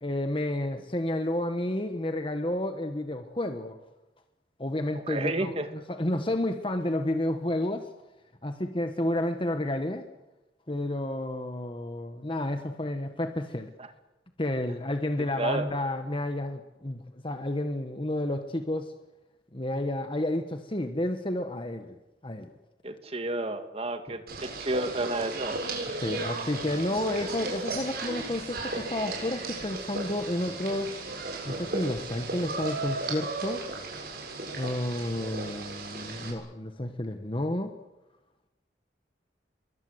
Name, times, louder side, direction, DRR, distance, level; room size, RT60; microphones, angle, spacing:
voice 1, 0.0-3.8 4.6-5.5 5.9-7.9 8.4-10.0 10.7-13.7 14.4-18.9 19.5-22.0 22.2-22.5 24.1-24.2 25.9-30.9 31.4-33.7 34.5-37.7, left 1 dB, 30° left, 7 dB, 1.4 m, -31 dB
voice 2, 5.1-5.7 15.4-15.7 22.8-25.6, right 2 dB, 35° right, 7 dB, 2.2 m, -31 dB
sound 1, 24.3-36.3, right 3 dB, 55° right, 7.4 m, -35 dB
29.0 x 22.5 x 8.1 m, 1.0 s
head